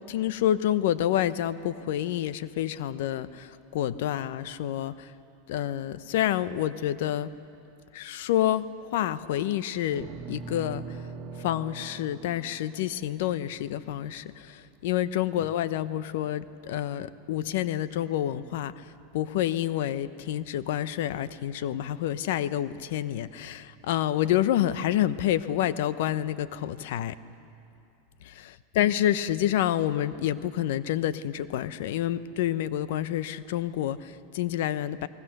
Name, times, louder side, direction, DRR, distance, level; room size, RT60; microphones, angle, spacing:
voice 1, 0.1-5.1 5.5-7.3 7.9-10.8 11.4-18.7 19.1-27.2 28.2-28.4 28.7-35.1, left 12 dB, 70° left, 14 dB, 0.8 m, -28 dB
sound 1, 9.9-14.3, right 5 dB, 40° right, 1.7 m, -42 dB
29.0 x 20.0 x 6.7 m, 2.6 s
hypercardioid pair, 120°, 0 cm